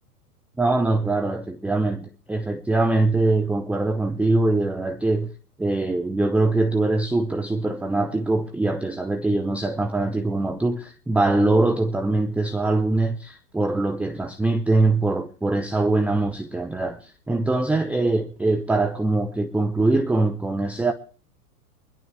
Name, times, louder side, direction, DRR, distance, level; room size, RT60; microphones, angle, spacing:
voice 1, 0.6-5.3 5.6-20.9, right 2 dB, 5° right, 0.7 m, -23 dB
23.0 x 11.5 x 3.3 m
figure-of-eight pair, 100°, 45 cm